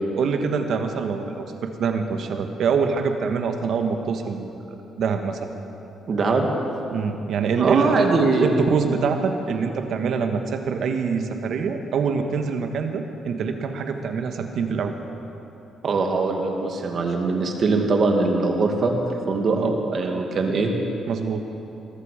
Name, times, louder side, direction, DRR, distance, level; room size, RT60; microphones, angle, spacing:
voice 1, 0.2-4.5 5.0-5.5 6.9-8.1 8.4-14.9 19.5-19.7 21.1-21.4, right 5 dB, 70° right, 6 dB, 1.4 m, -25 dB
voice 2, 6.1-6.5 7.6-8.6 15.8-18.9 19.3-20.7, right 3 dB, 50° right, 2 dB, 2.2 m, -22 dB
20.0 x 14.0 x 5.0 m, 2.9 s
cardioid pair, 90°, 0 cm